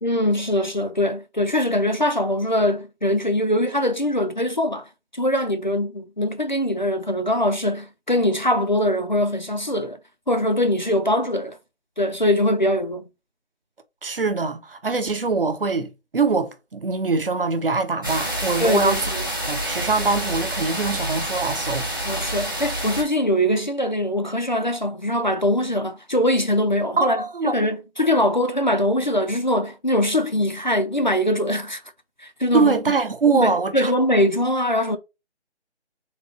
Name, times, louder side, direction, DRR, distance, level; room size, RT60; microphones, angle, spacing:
voice 1, 0.0-10.0 10.3-11.6 12.0-13.1 18.6-18.9 22.1-31.8 32.2-32.8 33.3-35.0, left 1 dB, 45° left, 0.4 m, -22 dB
voice 2, 14.0-19.1 19.5-21.9 27.0-27.5 32.5-33.9, right 4 dB, 55° right, 0.8 m, -23 dB
sound 1, 18.0-23.0, right 1 dB, 20° right, 0.8 m, -28 dB
3.8 x 2.8 x 4.3 m
figure-of-eight pair, 180°, 34 cm